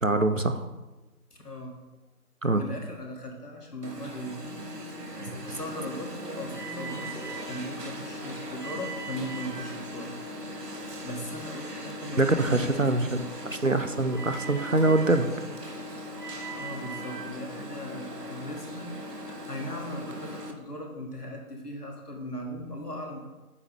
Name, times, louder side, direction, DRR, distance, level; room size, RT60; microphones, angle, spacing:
voice 1, 0.0-0.6 2.4-2.6 12.2-13.2 13.5-15.3, right 2 dB, 55° right, 8 dB, 0.5 m, -24 dB
voice 2, 1.3-1.8 2.5-4.6 5.2-10.2 10.7-13.1 16.6-23.2, equal, 80° left, 1 dB, 1.7 m, -38 dB
Alarm, 3.8-20.5, equal, 90° right, 1.2 m, -38 dB
8.2 x 5.0 x 3.1 m, 1.1 s
figure-of-eight pair, 180°, 46 cm